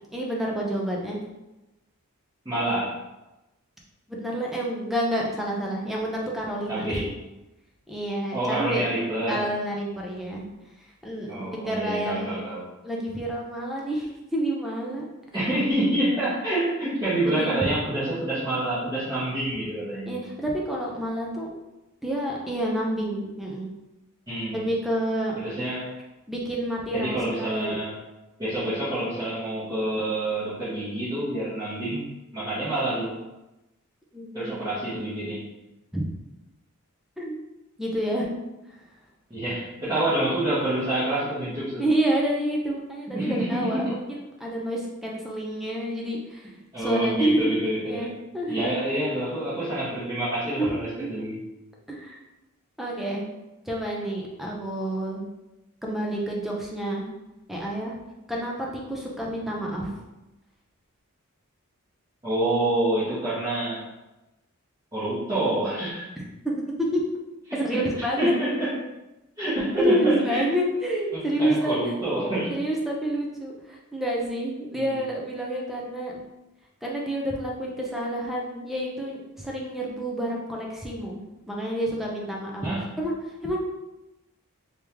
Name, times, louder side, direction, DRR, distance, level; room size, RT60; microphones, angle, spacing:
voice 1, 0.1-1.2 4.1-7.0 7.9-8.8 9.3-10.5 11.0-12.4 12.8-15.1 16.8-16.9 17.2-17.6 20.1-21.5 22.0-23.7 24.5-25.3 26.3-27.8 32.8-32.9 34.1-34.5 35.9-36.0 37.2-37.4 37.8-38.3 41.8-46.5 46.8-47.6 47.9-48.7 50.6-51.1 51.9-52.2 52.8-53.3 53.7-55.3 55.8-57.1 57.5-58.0 58.3-59.9 66.2-66.6 66.9-67.0 67.5-68.3 69.8-71.9 72.5-76.1 76.8-82.7 83.0-83.1 83.4-83.6, right 1 dB, ahead, -3 dB, 0.6 m, -28 dB
voice 2, 2.4-2.9 6.7-7.1 8.3-9.5 11.3-12.7 15.3-20.2 24.3-24.6 25.3-25.9 26.9-27.9 28.4-33.2 34.3-35.4 39.3-41.8 43.1-43.9 46.7-48.1 48.5-51.4 62.2-63.8 64.9-66.1 67.5-68.7 69.4-70.4 71.1-72.5 74.7-75.0 82.6-82.8, right 1 dB, 20° right, -15 dB, 1.3 m, -27 dB
3.3 x 2.9 x 3.4 m, 0.99 s
head